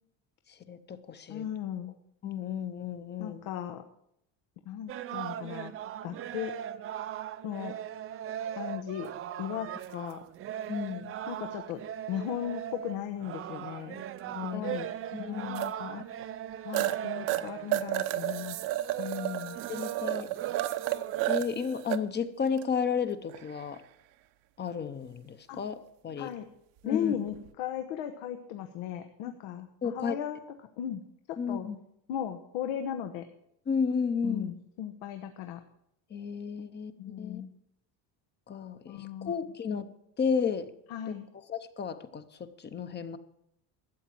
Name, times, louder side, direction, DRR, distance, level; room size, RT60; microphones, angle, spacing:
voice 1, 0.5-1.4 2.2-3.5 10.7-11.1 14.3-14.7 15.1-15.5 19.7-20.3 21.3-23.8 24.6-26.3 26.8-27.2 29.3-29.4 29.8-30.2 31.4-31.8 33.7-34.5 36.1-36.9 37.2-37.4 38.5-39.9 40.2-40.7 41.1-41.2 41.5-43.2, left 6 dB, 25° left, 12 dB, 0.7 m, -33 dB
voice 2, 1.3-1.9 3.2-3.8 4.6-5.7 6.0-6.5 7.4-7.7 8.6-9.1 9.4-10.2 11.3-11.8 12.1-14.0 14.5-14.9 15.2-16.2 16.6-18.6 19.0-19.6 25.5-25.6 26.2-26.4 26.8-30.4 30.8-31.0 31.5-31.7 32.1-33.2 34.2-35.6 37.0-37.5 38.9-39.3 40.9-41.3, left 10 dB, 90° left, 6 dB, 1.3 m, -36 dB
sound 1, 4.9-21.4, right 10 dB, 30° right, 0.4 m, -39 dB
sound 2, 9.8-9.9 12.4-12.5 15.5-15.7 16.2-16.3 16.7-17.0 17.3-22.0 22.5-22.6 23.3-23.8 27.3-27.5, right 15 dB, 80° right, 1.0 m, -32 dB
13.0 x 8.5 x 7.6 m, 0.77 s
cardioid pair, 165°, 46 cm